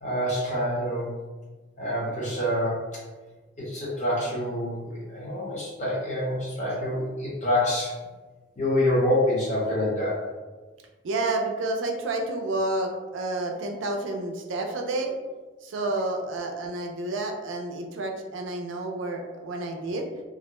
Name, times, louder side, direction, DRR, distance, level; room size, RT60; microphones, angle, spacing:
voice 1, 0.0-1.1 1.8-3.0 3.6-8.0 8.6-10.2, left 1 dB, 40° left, -6 dB, 0.8 m, -26 dB
voice 2, 11.0-15.1 15.6-20.0, right 2 dB, 80° right, 3 dB, 0.4 m, -30 dB
2.4 x 2.1 x 3.0 m, 1.3 s
head